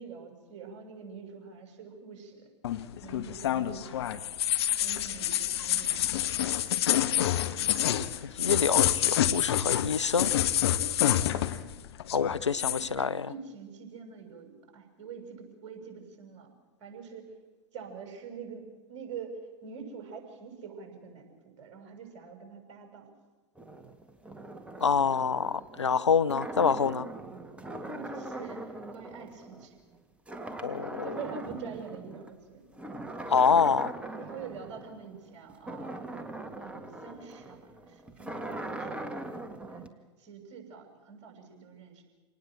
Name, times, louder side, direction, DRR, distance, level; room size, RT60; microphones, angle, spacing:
voice 1, 0.0-2.5 3.0-4.2 4.8-6.2 11.3-11.6 12.6-16.5 16.8-17.4 17.7-23.1 27.8-29.7 31.0-32.6 34.2-36.2 36.6-39.1 39.6-42.0, right 6 dB, 45° right, 4 dB, 6.7 m, -45 dB
sound 1, 2.6-11.7 12.0-12.9, left 11 dB, 65° left, 1.3 m, -27 dB
voice 2, 8.4-10.3 12.1-13.3 24.8-27.1 30.6-31.1 33.3-33.9, left 6 dB, 85° left, 15 dB, 0.7 m, -26 dB
sound 2, 23.6-30.0 30.3-32.3 32.7-39.9, right 1 dB, 10° right, 2.0 m, -41 dB
27.5 x 19.0 x 7.7 m, 1.3 s
figure-of-eight pair, 100°, 15 cm